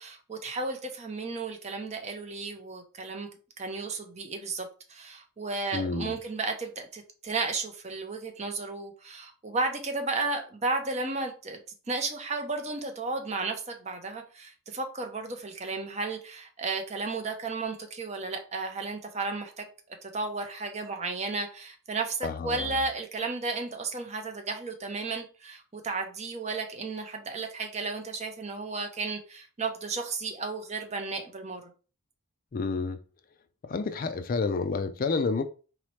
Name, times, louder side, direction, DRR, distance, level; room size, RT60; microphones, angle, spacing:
voice 1, 0.0-3.3 3.6-11.6 11.9-19.7 20.0-31.6, right 3 dB, 30° right, 0.6 m, -33 dB
voice 2, 5.7-6.2 22.2-22.7 32.5-33.0 33.6-35.4, left 4 dB, 40° left, 0.3 m, -29 dB
3.9 x 3.0 x 3.1 m
head